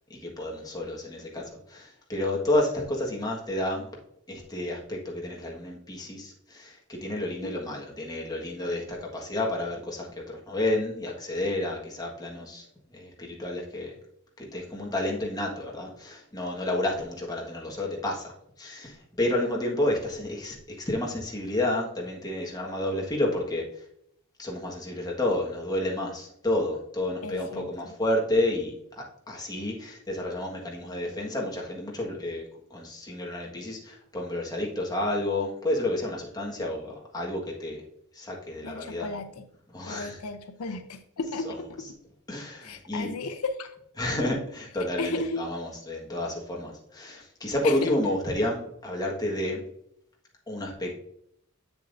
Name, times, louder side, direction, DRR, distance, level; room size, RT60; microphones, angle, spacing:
voice 1, 0.1-3.9 4.3-14.0 14.4-23.8 24.4-37.8 38.1-39.1 39.7-40.2 41.4-41.5 42.3-43.1 44.0-49.6 50.5-51.0, left 1 dB, 20° left, -2 dB, 1.5 m, -30 dB
voice 2, 27.2-27.7 38.6-39.4 39.9-41.7 42.6-43.8 45.0-45.4 47.6-47.9, left 3 dB, 90° left, 9 dB, 0.6 m, -34 dB
7.9 x 7.2 x 2.6 m, 0.73 s
head